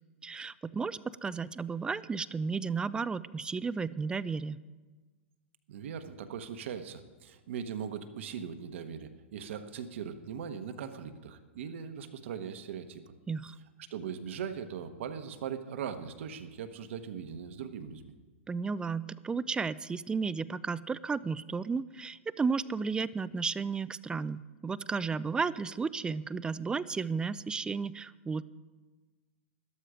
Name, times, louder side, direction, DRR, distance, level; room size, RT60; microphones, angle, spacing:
voice 1, 0.2-4.6 13.3-13.6 18.5-28.4, right 5 dB, 10° right, 18 dB, 0.3 m, -33 dB
voice 2, 5.7-13.1 13.9-18.1, right 7 dB, 70° right, 8 dB, 1.1 m, -40 dB
13.0 x 12.5 x 5.0 m, 1.3 s
hypercardioid pair, 115°, 7 cm